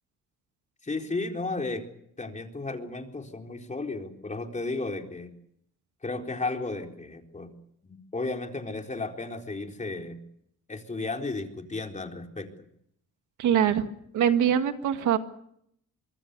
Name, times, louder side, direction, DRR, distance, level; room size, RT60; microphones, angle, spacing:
voice 1, 0.8-1.8 2.2-5.3 6.0-7.5 7.8-10.2 10.7-12.5, left 3 dB, 25° left, 3 dB, 4.2 m, -34 dB
voice 2, 13.4-13.8 14.1-15.2, right 9 dB, 80° right, 8 dB, 2.0 m, -23 dB
25.5 x 22.5 x 6.9 m, 0.72 s
cardioid pair, 90°, 30 cm